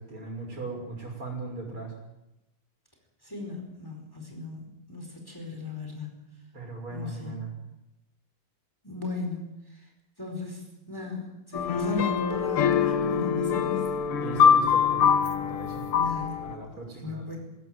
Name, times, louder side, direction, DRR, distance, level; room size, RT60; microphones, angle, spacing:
voice 1, 0.0-1.9 6.5-7.5 14.2-15.0 15.4-15.8 16.4-17.4, right 3 dB, 70° right, 1 dB, 6.9 m, -38 dB
voice 2, 3.2-4.6 4.9-6.2 6.9-7.4 8.8-9.5 10.2-10.6 10.9-13.8 15.9-16.4 17.0-17.4, left 3 dB, 10° left, 2 dB, 4.5 m, -35 dB
sound 1, 11.5-16.5, left 7 dB, 80° left, 2.2 m, -24 dB
21.0 x 16.5 x 9.2 m, 0.91 s
omnidirectional pair, 2.4 m